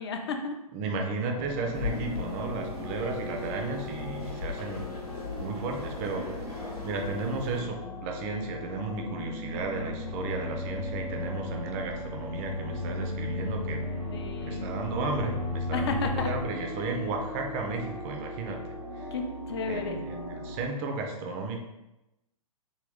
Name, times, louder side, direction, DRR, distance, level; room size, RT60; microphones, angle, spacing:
voice 1, 0.0-0.6 1.9-2.0 14.1-14.8 15.7-16.3 19.1-20.0, left 4 dB, 45° left, 4 dB, 0.5 m, -33 dB
voice 2, 0.7-5.0 5.4-13.9 14.4-18.6 18.9-19.1 19.7-21.6, right 3 dB, 20° right, 3 dB, 0.4 m, -34 dB
sound 1, 1.3-20.7, left 2 dB, 65° left, 1.0 m, -40 dB
sound 2, 1.7-7.6, left 4 dB, 85° left, 0.9 m, -38 dB
sound 3, 9.4-16.4, left 2 dB, 80° right, 0.5 m, -35 dB
3.4 x 2.2 x 3.5 m, 0.95 s
figure-of-eight pair, 115°, 19 cm